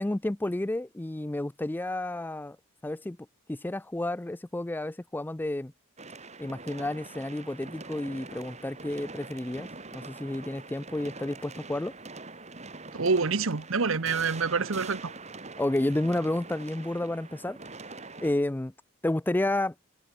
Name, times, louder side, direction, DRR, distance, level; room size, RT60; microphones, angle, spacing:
voice 1, 0.0-2.6 2.8-3.2 3.5-5.7 6.4-11.9 15.6-17.6 18.2-18.7 19.0-19.7, left 1 dB, 10° left, 0.4 m, -31 dB
sound 1, 6.0-18.3, right 3 dB, 35° right, 5.5 m, -44 dB
voice 2, 12.9-15.1, right 4 dB, 75° right, 1.0 m, -27 dB
head